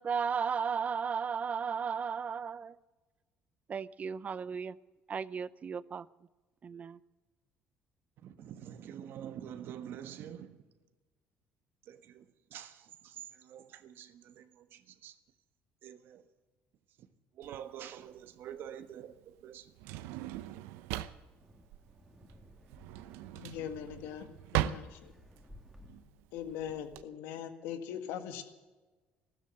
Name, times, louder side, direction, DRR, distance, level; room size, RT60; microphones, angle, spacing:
voice 1, 0.0-2.8 3.7-4.8 5.1-6.1 6.6-7.0, right 6 dB, 40° right, 0.6 m, -35 dB
voice 2, 8.2-10.6 11.8-15.2 15.8-16.3 17.0-17.1 17.3-19.7, right 10 dB, 65° right, 1.3 m, -47 dB
Drawer open or close, 17.4-27.0, right 13 dB, 85° right, 0.7 m, -39 dB
Wind, 21.2-26.3, left 1 dB, 5° right, 2.7 m, -58 dB
voice 3, 23.4-25.1 26.3-28.4, left 9 dB, 85° left, 1.8 m, -41 dB
14.0 x 13.0 x 7.7 m
supercardioid pair, 85°, 4 cm